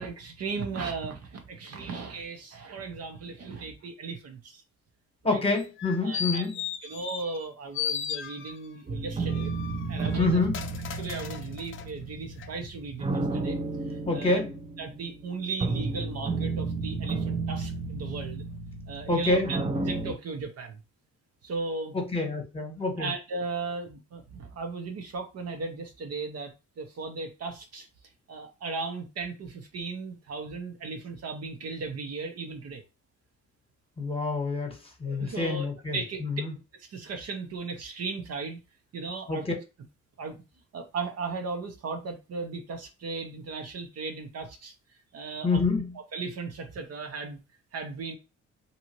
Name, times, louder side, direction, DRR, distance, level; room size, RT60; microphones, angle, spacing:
voice 1, 0.0-4.6 5.2-5.4 6.0-6.5 6.8-9.5 9.9-10.4 10.9-13.6 13.9-14.4 14.8-18.4 18.9-20.8 21.4-22.0 23.0-27.9 28.3-32.8 35.0-35.7 35.9-36.2 36.8-38.6 38.9-39.4 40.2-40.4 40.7-44.7 45.1-45.6 46.1-47.4 47.7-48.2, right 4 dB, 55° right, 0.8 m, -36 dB
voice 2, 5.2-6.6 10.2-10.5 14.1-14.5 19.1-19.5 21.9-23.1 34.0-36.5 39.3-39.5 45.4-45.9, left 3 dB, 20° left, 1.1 m, -27 dB
sound 1, 5.6-7.5 7.7-8.8 9.3-11.9 12.4-12.5, left 9 dB, 45° left, 0.5 m, -36 dB
sound 2, 8.9-20.1, right 3 dB, 20° right, 0.5 m, -32 dB
2.8 x 2.4 x 3.0 m
cardioid pair, 90°, 30 cm